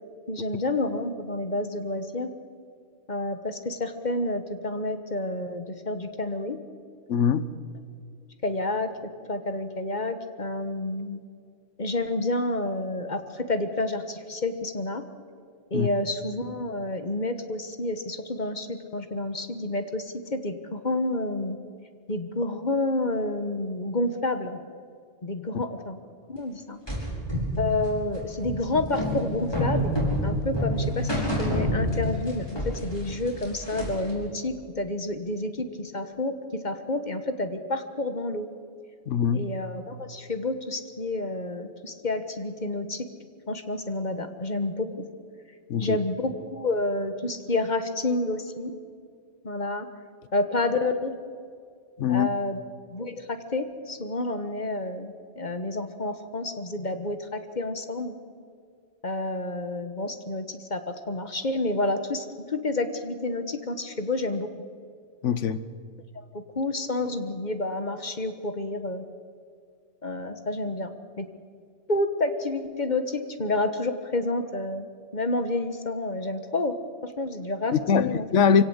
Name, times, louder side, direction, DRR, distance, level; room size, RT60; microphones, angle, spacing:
voice 1, 0.3-2.3 3.1-6.6 8.4-11.2 11.8-15.0 15.7-21.6 22.1-24.6 25.2-26.0 26.3-26.8 27.6-30.0 30.2-38.5 39.3-43.1 43.5-44.9 45.8-48.7 49.4-49.9 50.3-51.1 52.1-52.6 52.9-58.1 59.0-64.5 66.1-69.0 70.0-70.9 71.2-71.3 71.9-76.8 77.0-78.2, left 2 dB, 40° left, 9 dB, 1.3 m, -29 dB
voice 2, 7.1-7.5 15.7-15.9 25.5-25.6 39.1-39.5 45.7-46.0 52.0-52.3 65.2-65.6 77.7-78.6, left 7 dB, 75° left, 14 dB, 1.2 m, -22 dB
sound 1, 26.9-32.3 32.6-34.1, equal, 20° left, 5.1 m, -28 dB
25.0 x 17.0 x 8.0 m, 2.2 s
omnidirectional pair, 1.3 m